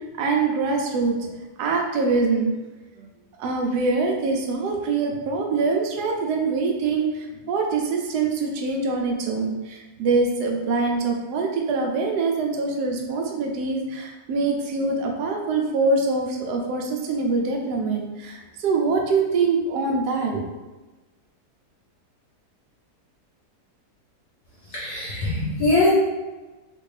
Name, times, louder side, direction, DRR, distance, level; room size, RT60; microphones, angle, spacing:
voice 1, 0.2-1.3 1.6-2.5 3.0-3.1 3.4-20.4, right 3 dB, 85° right, 1 dB, 1.2 m, -24 dB
voice 2, 24.7-25.9, left 2 dB, 45° left, -7 dB, 0.8 m, -22 dB
3.5 x 2.5 x 3.2 m, 1.2 s
omnidirectional pair, 1.7 m